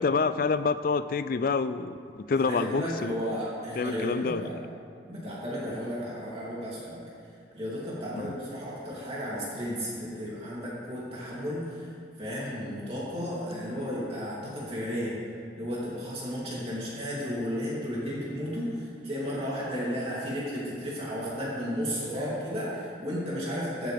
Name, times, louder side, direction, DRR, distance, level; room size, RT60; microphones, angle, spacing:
voice 1, 0.0-3.2 3.8-4.5 8.1-8.4 13.7-13.8, left 4 dB, 50° left, 13 dB, 0.3 m, -28 dB
voice 2, 2.3-4.5 5.1-7.0 7.5-15.2 15.5-23.9, equal, 35° right, -7 dB, 3.0 m, -33 dB
15.0 x 8.6 x 3.5 m, 2.4 s
head